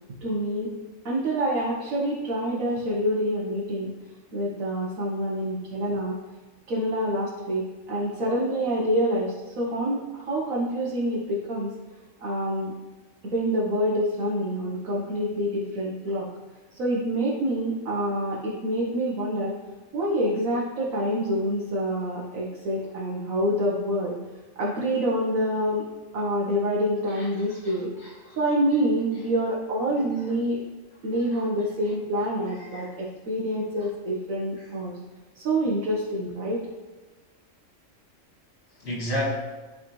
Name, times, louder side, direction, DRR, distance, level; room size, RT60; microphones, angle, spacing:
voice 1, 0.2-0.7 1.0-3.9 4.3-6.2 6.7-11.7 12.2-12.7 13.2-16.3 16.8-19.5 19.9-24.2 24.6-25.8 26.1-27.9 28.4-30.6 31.0-35.0 35.3-36.6, equal, 80° right, -5 dB, 1.5 m, -27 dB
voice 2, 27.1-28.4 31.3-31.4 32.6-32.9 34.6-34.7 38.8-39.2, equal, 55° left, -3 dB, 1.9 m, -34 dB
12.0 x 4.1 x 3.1 m, 1.3 s
omnidirectional pair, 1.4 m